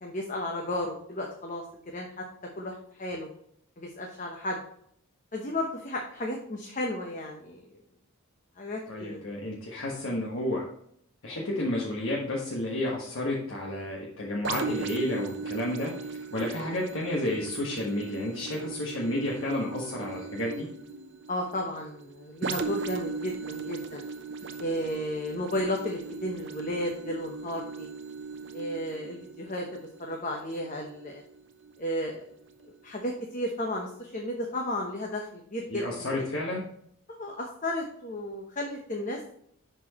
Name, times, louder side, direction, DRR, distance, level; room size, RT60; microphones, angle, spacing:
voice 1, 0.0-2.2 2.6-3.3 3.8-4.6 5.3-7.8 8.6-9.2 10.1-10.2 21.3-24.0 24.6-27.9 28.5-31.2 31.8-32.2 32.8-36.1 37.1-39.3, left 1 dB, 35° left, 0 dB, 0.9 m, -33 dB
voice 2, 8.9-10.6 11.2-20.7 35.7-36.6, left 1 dB, 60° left, -4 dB, 1.4 m, -31 dB
sound 1, 14.4-32.0 32.5-32.6, right 5 dB, 55° right, 0.7 m, -38 dB
10.5 x 4.6 x 3.0 m, 0.68 s
head